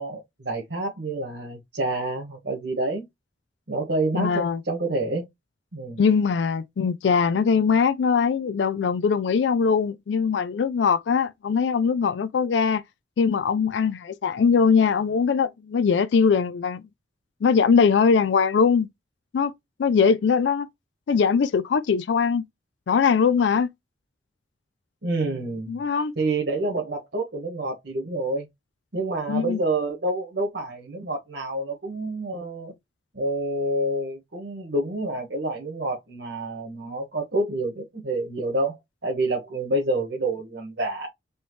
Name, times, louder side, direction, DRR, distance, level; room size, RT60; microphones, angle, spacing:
voice 1, 0.0-3.0 3.7-5.3 5.7-6.0 25.0-25.8 26.2-28.5 28.9-32.7 33.1-38.8 39.0-41.1, right 2 dB, 70° right, 1.5 m, -28 dB
voice 2, 4.1-4.6 6.0-12.8 13.2-16.8 17.4-18.9 19.3-19.5 19.8-20.7 21.1-22.4 22.9-23.7 25.7-26.1 29.3-29.6, left 6 dB, 85° left, 0.4 m, -21 dB
4.3 x 3.2 x 3.2 m
head